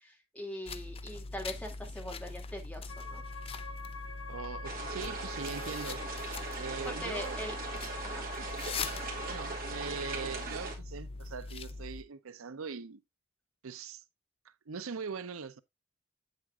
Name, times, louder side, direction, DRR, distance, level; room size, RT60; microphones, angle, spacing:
voice 1, 0.0-3.2 6.8-7.6 8.0-8.2, equal, 5° left, 2.4 m, -42 dB
sound 1, 0.7-12.0, left 3 dB, 30° left, 0.5 m, -42 dB
sound 2, 2.9-10.5, left 4 dB, 70° left, 1.5 m, -46 dB
voice 2, 4.3-6.0 6.6-7.5 9.2-13.0 13.6-14.0 14.4-15.6, right 5 dB, 90° right, 0.7 m, -41 dB
sound 3, 4.6-10.8, right 4 dB, 45° right, 2.6 m, -40 dB
8.7 x 7.7 x 2.4 m
head